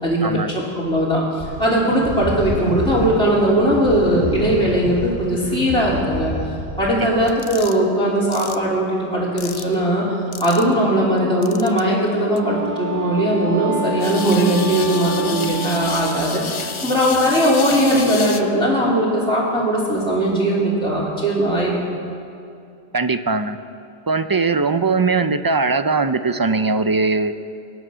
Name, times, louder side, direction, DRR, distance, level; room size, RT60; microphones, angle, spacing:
voice 1, 0.5-6.3 6.8-10.0 10.4-21.8, right 1 dB, 5° left, -7 dB, 2.9 m, -19 dB
sound 1, 1.4-7.2, right 1 dB, 65° right, 3.1 m, -29 dB
sound 2, 7.3-7.8 8.3-8.6 9.4-9.7 10.3-10.7 11.4-11.8 12.4-12.5 14.0-18.4, left 5 dB, 35° left, 0.6 m, -31 dB
Wind instrument woodwind instrument, 12.2-16.9, right 1 dB, 55° left, 1.6 m, -28 dB
voice 2, 22.9-23.6 24.1-27.4, right 4 dB, 35° right, 10 dB, 0.3 m, -20 dB
22.5 x 9.3 x 6.2 m, 2.5 s
omnidirectional pair, 1.1 m